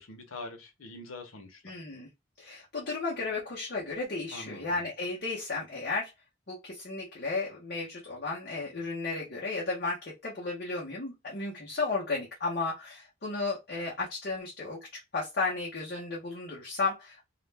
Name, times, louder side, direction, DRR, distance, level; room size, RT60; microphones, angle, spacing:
voice 1, 0.0-1.6 4.3-4.8, left 2 dB, 90° left, 0.8 m, -44 dB
voice 2, 1.6-2.1 2.4-6.1 6.5-14.9 15.1-17.2, left 3 dB, 50° left, 0.8 m, -34 dB
2.4 x 2.1 x 3.2 m
head